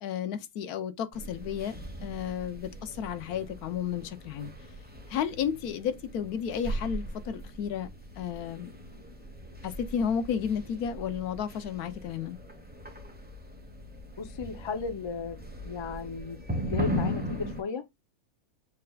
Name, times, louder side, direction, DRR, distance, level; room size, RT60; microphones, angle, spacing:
voice 1, 0.0-4.5 5.1-7.9 8.2-8.7 9.6-12.4, left 8 dB, 85° left, 1.2 m, -32 dB
sound 1, 1.1-17.6, equal, 10° right, 0.8 m, -38 dB
voice 2, 14.2-17.8, left 5 dB, 50° left, 0.3 m, -35 dB
6.6 x 3.4 x 2.3 m
omnidirectional pair, 1.6 m